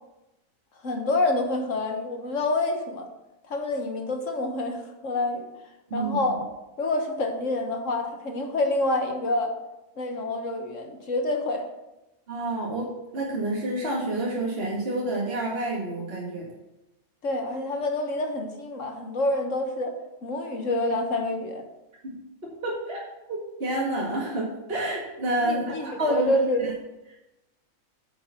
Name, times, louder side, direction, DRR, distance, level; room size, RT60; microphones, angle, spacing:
voice 1, 0.8-3.1 3.4-5.5 5.9-6.4 6.8-9.5 10.0-11.7 17.2-20.0 20.2-21.6 25.4-26.7, left 2 dB, 60° left, 4 dB, 1.6 m, -27 dB
voice 2, 12.3-12.9 13.1-16.5 22.0-22.1 22.6-23.0 23.3-26.7, right 1 dB, 45° right, -4 dB, 2.2 m, -28 dB
9.1 x 6.8 x 5.8 m, 0.97 s
omnidirectional pair, 1.5 m